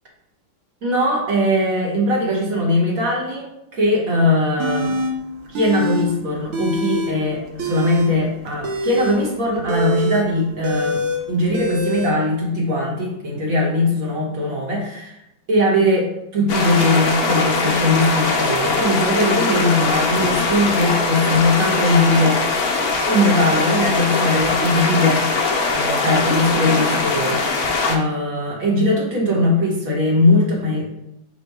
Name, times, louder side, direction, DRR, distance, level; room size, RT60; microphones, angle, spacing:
voice 1, 0.8-5.0 5.5-11.0 11.3-15.2 15.5-22.5 23.1-25.3 25.7-30.9, left 1 dB, 50° right, -2 dB, 1.3 m, -20 dB
sound 1, 4.6-5.1 5.5-6.1 6.3-7.1 7.5-12.1, right 1 dB, 80° right, 1.5 m, -25 dB
sound 2, 16.5-28.0, left 3 dB, 70° left, 0.8 m, -21 dB
5.3 x 2.2 x 4.6 m, 0.84 s
omnidirectional pair, 2.2 m